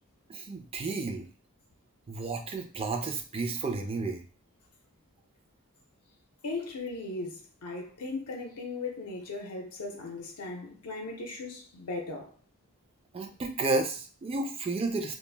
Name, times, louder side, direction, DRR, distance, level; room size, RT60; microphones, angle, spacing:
voice 1, 0.3-1.3 2.1-4.2 13.1-15.2, right 3 dB, 25° right, 0.4 m, -32 dB
voice 2, 6.4-12.3, left 3 dB, 75° left, 0.5 m, -37 dB
2.4 x 2.1 x 3.2 m
head